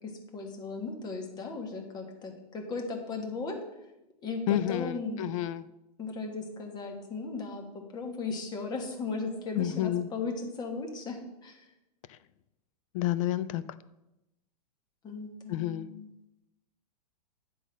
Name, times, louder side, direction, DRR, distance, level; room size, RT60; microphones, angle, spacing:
voice 1, 0.0-3.6 4.2-5.3 6.0-7.6 7.9-11.7 15.0-16.1, left 4 dB, 20° left, 3 dB, 1.4 m, -37 dB
voice 2, 4.5-5.6 9.6-10.1 12.9-13.6 15.5-15.9, left 13 dB, 50° left, 15 dB, 0.5 m, -29 dB
10.0 x 3.9 x 6.3 m, 0.92 s
hypercardioid pair, 140°, 21 cm